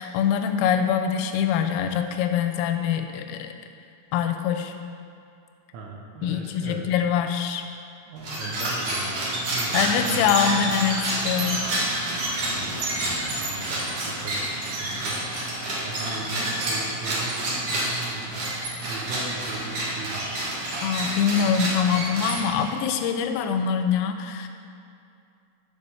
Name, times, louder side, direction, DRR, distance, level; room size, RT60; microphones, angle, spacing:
voice 1, 0.0-3.5 4.1-4.7 6.2-7.6 9.7-11.6 15.6-15.8 20.8-24.5, left 8 dB, 85° left, 7 dB, 3.2 m, -24 dB
voice 2, 5.7-6.8 8.1-10.6 12.3-15.2 15.8-20.7 21.4-21.6, right 3 dB, 75° right, -1 dB, 3.5 m, -39 dB
sound 1, 8.2-22.8, right 1 dB, 55° right, 2.2 m, -28 dB
11.0 x 5.1 x 6.9 m, 2.5 s
omnidirectional pair, 6.0 m